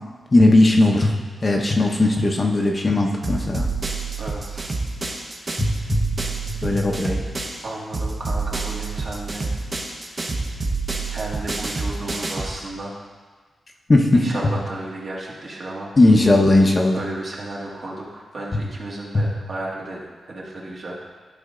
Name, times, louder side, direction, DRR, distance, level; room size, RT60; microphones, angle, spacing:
voice 1, 0.3-1.2 1.4-3.7 5.6-6.2 6.6-7.2 13.9-14.3 16.0-17.0 18.5-18.6 19.1-19.3, left 2 dB, 30° left, 1 dB, 0.9 m, -17 dB
sound 1, 3.2-7.6 7.9-12.6, right 3 dB, 35° right, 1.0 m, -28 dB
voice 2, 4.2-4.7 7.6-9.5 11.1-13.0 14.1-15.9 16.9-20.0 20.3-21.0, right 2 dB, 55° right, -4 dB, 1.9 m, -33 dB
11.5 x 5.0 x 3.8 m, 1.4 s
cardioid pair, 85°, 0 cm